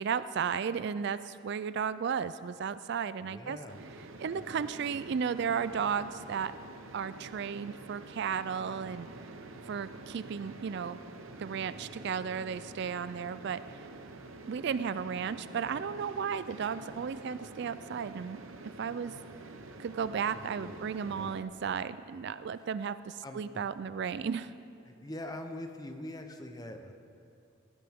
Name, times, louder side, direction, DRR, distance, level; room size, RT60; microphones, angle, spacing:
voice 1, 0.0-3.6 4.0-6.5 6.9-9.1 9.6-11.0 11.4-13.9 14.5-19.2 19.8-24.5, right 7 dB, 55° right, 14 dB, 0.3 m, -34 dB
voice 2, 3.2-3.8 20.3-21.4 22.5-22.6 23.2-23.4 24.9-26.9, left 1 dB, 20° left, 5 dB, 0.9 m, -43 dB
sound 1, 3.7-21.4, right 2 dB, 75° right, 0.9 m, -48 dB
18.5 x 15.0 x 3.6 m, 2.5 s
head